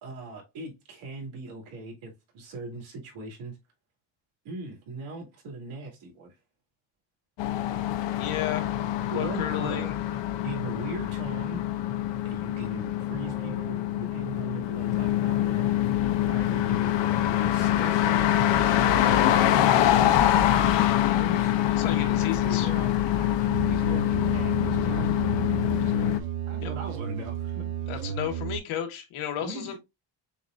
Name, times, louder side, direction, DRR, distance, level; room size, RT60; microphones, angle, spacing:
voice 1, 0.0-3.6 4.4-6.4 9.1-9.9 10.4-11.6 12.2-15.8 16.2-25.1 25.7-26.1 26.5-27.9 29.4-29.8, right 3 dB, 85° right, 2.6 m, -40 dB
sound 1, 7.4-26.2, left 12 dB, 65° left, 0.7 m, -25 dB
voice 2, 8.1-8.7 9.1-9.9 21.7-22.7 26.6-26.7 27.9-29.8, left 10 dB, 80° left, 1.4 m, -33 dB
sound 2, 12.2-15.6, right 1 dB, 10° right, 0.9 m, -51 dB
sound 3, 23.5-28.6, right 8 dB, 45° right, 1.1 m, -33 dB
6.9 x 2.5 x 2.5 m
cardioid pair, 150°, 48 cm